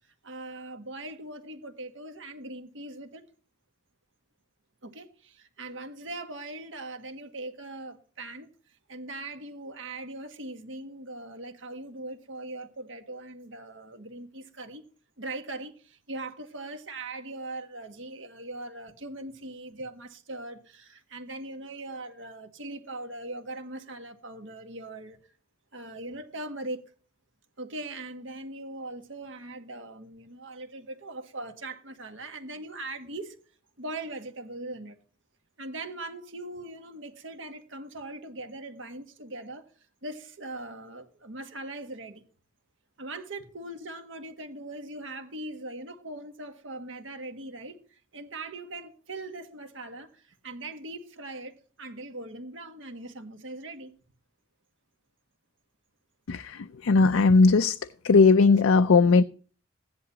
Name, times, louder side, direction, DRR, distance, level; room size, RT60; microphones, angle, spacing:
voice 1, 0.2-3.2 4.8-8.5 8.9-14.9 15.2-25.2 25.7-26.8 27.6-33.3 33.8-35.0 35.6-39.7 40.0-42.2 43.0-53.9, right 2 dB, 70° right, 1.6 m, -40 dB
voice 2, 56.3-57.8 58.0-59.2, left 4 dB, 85° left, 0.5 m, -19 dB
15.5 x 10.5 x 2.8 m
head